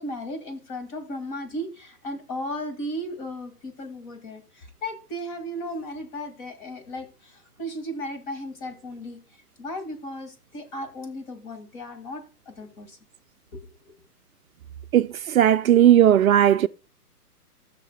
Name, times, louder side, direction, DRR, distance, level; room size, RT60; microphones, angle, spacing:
voice 1, 0.0-9.2 9.6-13.0 13.5-13.7, equal, 30° left, 2.1 m, -35 dB
voice 2, 14.9-16.7, right 11 dB, 60° right, 0.5 m, -17 dB
19.5 x 6.6 x 2.3 m
hypercardioid pair, 145°, 47 cm